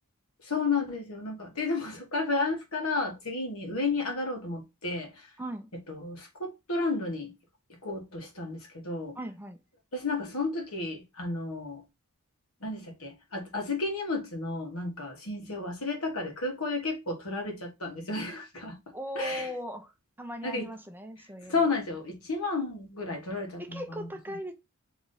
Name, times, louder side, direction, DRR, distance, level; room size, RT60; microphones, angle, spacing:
voice 1, 0.4-5.3 5.9-7.3 7.8-9.2 9.9-11.8 12.6-18.8 19.1-19.5 20.4-20.7 21.5-24.4, left 3 dB, 70° left, 1.4 m, -32 dB
voice 2, 5.4-5.7 9.2-9.6 18.9-19.9 20.2-21.7 23.6-24.5, equal, 10° right, 0.5 m, -38 dB
4.0 x 3.1 x 3.8 m
head